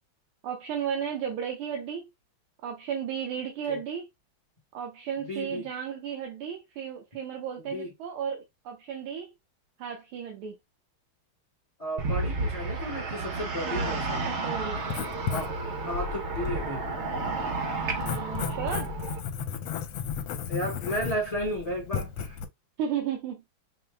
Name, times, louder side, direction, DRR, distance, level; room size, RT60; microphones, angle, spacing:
voice 1, 0.4-2.1 2.6-4.1 4.7-9.3 9.8-10.6 13.6-14.0 14.3-14.8 18.0-18.9 22.8-23.4, right 8 dB, 85° right, 1.7 m, -34 dB
voice 2, 5.2-5.7 7.7-7.9 11.8-14.2 15.3-15.5 15.8-16.9 20.5-22.4, equal, 35° left, 0.6 m, -33 dB
sound 1, 12.0-19.2, right 3 dB, 55° right, 0.8 m, -32 dB
Writing, 14.8-22.4, left 7 dB, 75° left, 1.4 m, -35 dB
5.5 x 2.1 x 3.4 m
omnidirectional pair, 2.3 m